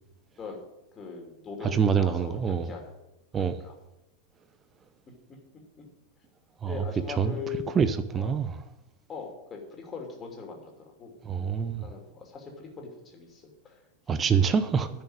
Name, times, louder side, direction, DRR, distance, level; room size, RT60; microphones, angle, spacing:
voice 1, 0.9-2.9 3.4-3.7 5.8-5.9 6.6-7.8 8.2-8.4 9.1-10.7 11.0-13.8 14.1-14.2, left 5 dB, 25° left, 2.9 m, -41 dB
voice 2, 1.6-2.7 3.3-3.6 6.6-6.8 7.2-7.4 7.7-8.6 11.2-11.8 14.1-14.9, right 6 dB, 20° right, 0.7 m, -25 dB
10.5 x 6.5 x 8.7 m
figure-of-eight pair, 90°, 0 cm